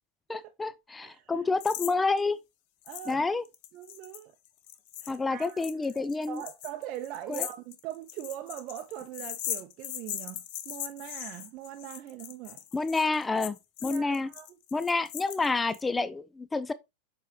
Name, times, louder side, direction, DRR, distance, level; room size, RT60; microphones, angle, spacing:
voice 1, 0.3-2.4 3.1-3.4 5.1-6.4 7.3-7.5 12.7-13.6 13.8-14.3 14.7-16.7, left 3 dB, 10° left, 0.4 m, -28 dB
voice 2, 1.0-1.5 2.8-3.3 3.7-4.3 5.0-5.7 6.3-12.6 13.8-14.5, right 12 dB, 40° right, 0.7 m, -41 dB
sound 1, 1.6-1.9 2.2-2.3 2.9-3.1 3.4-15.8, left 12 dB, 45° left, 0.9 m, -40 dB
7.4 x 5.6 x 3.2 m
figure-of-eight pair, 90°, 0 cm